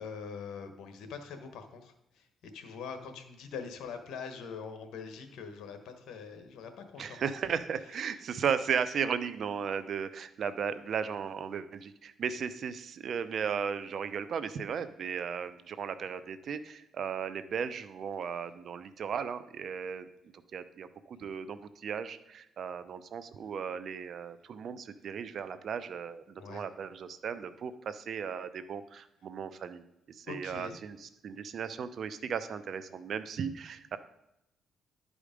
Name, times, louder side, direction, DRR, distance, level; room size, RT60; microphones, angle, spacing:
voice 1, 0.0-2.3 2.5-7.5 26.4-26.6 30.2-30.8, left 5 dB, 80° left, 7 dB, 1.3 m, -43 dB
voice 2, 7.0-20.1 20.5-29.8 30.1-34.0, right 7 dB, 60° right, 13 dB, 0.6 m, -36 dB
11.0 x 5.0 x 5.1 m, 0.86 s
cardioid pair, 90°, 0 cm